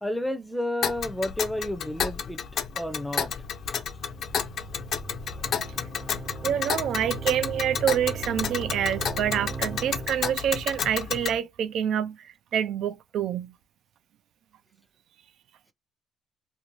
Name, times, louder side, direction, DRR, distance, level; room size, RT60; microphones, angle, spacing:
voice 1, 0.0-2.4 2.8-3.3, left 1 dB, 5° left, 0.5 m, -31 dB
Tick, 0.8-11.4, left 7 dB, 65° left, 0.5 m, -31 dB
sound 1, 3.6-10.4, right 6 dB, 45° right, 0.9 m, -39 dB
voice 2, 6.4-13.5, right 9 dB, 75° right, 0.3 m, -27 dB
2.5 x 2.0 x 3.0 m
cardioid pair, 90°, 0 cm